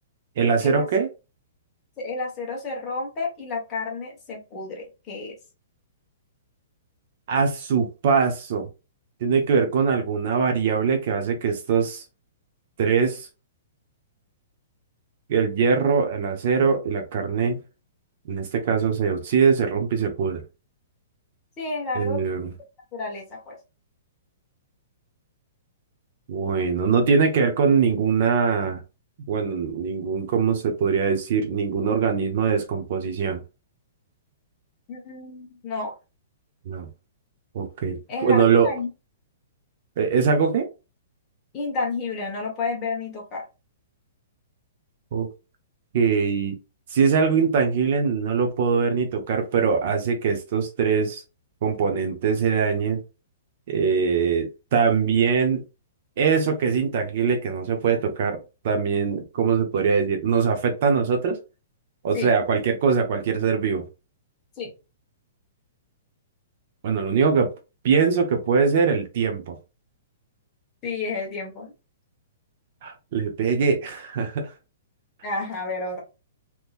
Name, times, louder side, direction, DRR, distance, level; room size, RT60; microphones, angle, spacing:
voice 1, 0.4-1.1 7.3-8.7 9.2-12.0 12.8-13.3 15.3-17.6 18.3-20.4 22.0-22.5 26.3-28.8 29.3-33.4 36.7-36.9 37.5-38.7 40.0-40.7 45.1-45.3 45.9-46.6 46.9-51.2 51.6-53.0 53.7-55.6 56.2-58.4 58.6-61.4 62.0-63.9 66.8-67.5 67.8-69.6 72.8-74.5, right 6 dB, 40° right, 0.7 m, -22 dB
voice 2, 2.0-5.3 21.6-22.2 22.9-23.6 34.9-35.9 38.1-38.9 41.5-43.4 62.1-62.3 64.6-64.7 70.8-71.7 75.2-76.0, left 3 dB, 15° left, 1.3 m, -31 dB
3.6 x 2.9 x 2.5 m
hypercardioid pair, 175°, 0 cm